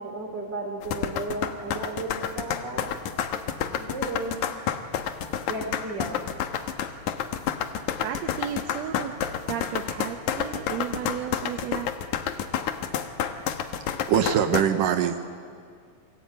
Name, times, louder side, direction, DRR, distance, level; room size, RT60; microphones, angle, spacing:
voice 1, 0.0-2.9 3.6-4.4 5.4-6.2, right 2 dB, 30° right, 3 dB, 4.1 m, -34 dB
sound 1, 0.8-14.6, left 9 dB, 70° left, 2.5 m, -29 dB
voice 2, 8.0-9.1 9.5-11.9, right 9 dB, 65° right, 5 dB, 2.0 m, -33 dB
voice 3, 13.4-15.4, right 8 dB, 80° right, 7 dB, 2.7 m, -24 dB
28.5 x 23.5 x 8.8 m, 2.2 s
omnidirectional pair, 3.7 m